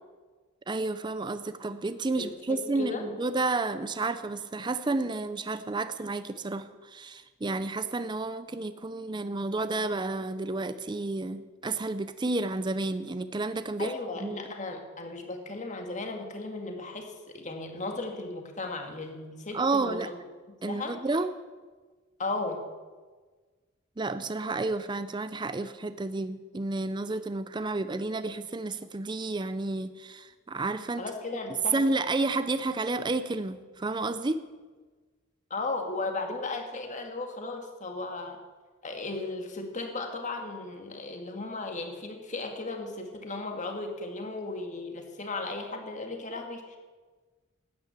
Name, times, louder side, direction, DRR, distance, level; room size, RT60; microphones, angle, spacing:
voice 1, 0.7-13.9 14.2-14.4 19.5-20.1 20.6-21.3 24.0-31.0 31.7-34.4, right 2 dB, 20° right, 12 dB, 0.5 m, -31 dB
voice 2, 2.2-3.1 13.8-20.2 20.7-20.9 22.2-22.7 31.0-31.8 35.5-38.4 38.8-46.8, left 3 dB, 35° left, 4 dB, 1.8 m, -36 dB
12.5 x 9.5 x 8.1 m, 1.4 s
head